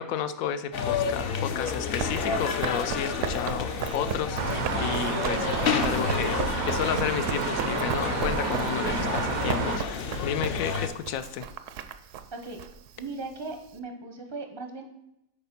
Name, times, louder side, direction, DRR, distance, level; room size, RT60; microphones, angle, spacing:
voice 1, 0.0-6.4 6.6-11.5, left 9 dB, 80° left, 12 dB, 1.0 m, -32 dB
sound 1, 0.7-10.9, left 6 dB, 55° left, 0.7 m, -30 dB
Run, 1.5-13.8, right 8 dB, 70° right, 0.9 m, -36 dB
sound 2, 4.4-9.8, right 7 dB, 90° right, 1.1 m, -31 dB
voice 2, 13.0-14.8, right 3 dB, 30° right, 4 dB, 0.5 m, -38 dB
6.8 x 4.3 x 5.8 m, 0.84 s
omnidirectional pair, 1.5 m